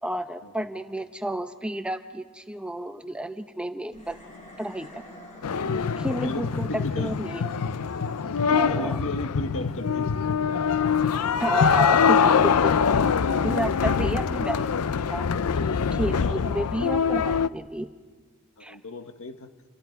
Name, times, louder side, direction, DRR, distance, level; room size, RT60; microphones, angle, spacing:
voice 1, 0.0-4.2 4.6-5.0 6.0-7.5 8.5-9.0 11.4-12.4 12.6-12.7 13.1-14.7 15.1-15.3 15.6-17.9 18.6-18.8, right 1 dB, 5° right, 8 dB, 0.7 m, -31 dB
sound 1, 3.9-15.3, left 1 dB, 30° left, 6.3 m, -49 dB
sound 2, 5.4-17.5, left 6 dB, 85° left, 0.6 m, -24 dB
voice 2, 5.6-7.2 8.2-10.1 10.5-11.3 15.7-16.5 18.6-19.5, left 2 dB, 65° left, 7 dB, 1.5 m, -36 dB
29.0 x 24.0 x 4.7 m, 1.4 s
head